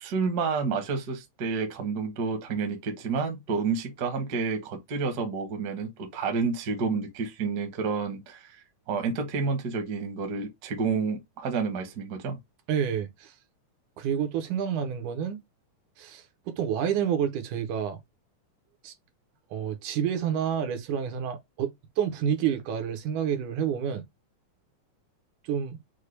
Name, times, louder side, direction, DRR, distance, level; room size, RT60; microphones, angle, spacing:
voice 1, 0.0-8.6 8.9-12.4, right 5 dB, 55° right, 1.0 m, -29 dB
voice 2, 12.7-13.3 14.0-15.4 16.0-18.0 18.8-18.9 19.5-24.0 25.4-25.8, right 8 dB, 85° right, 2.4 m, -29 dB
6.4 x 2.2 x 3.2 m
omnidirectional pair, 3.5 m